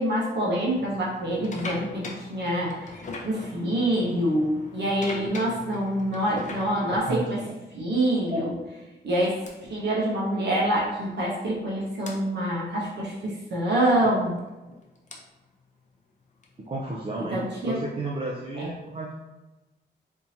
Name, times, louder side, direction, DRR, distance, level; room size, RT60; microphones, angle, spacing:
voice 1, 0.0-2.9 3.2-7.4 7.7-8.5 9.0-9.4 9.7-14.3 17.3-17.7 18.6-18.7, right 1 dB, 70° right, -4 dB, 0.8 m, -26 dB
sound 1, 0.7-7.5 8.3-8.5 9.5-9.6 10.9-11.0 11.2-11.4 12.1-12.2 14.0-17.1, left 3 dB, 40° left, 0.5 m, -41 dB
voice 2, 6.9-7.5 8.3-8.5 14.7-14.8 16.7-19.1, right 2 dB, 30° right, -4 dB, 0.4 m, -33 dB
3.6 x 2.7 x 2.8 m, 1.1 s
wide cardioid pair, 135°, 19 cm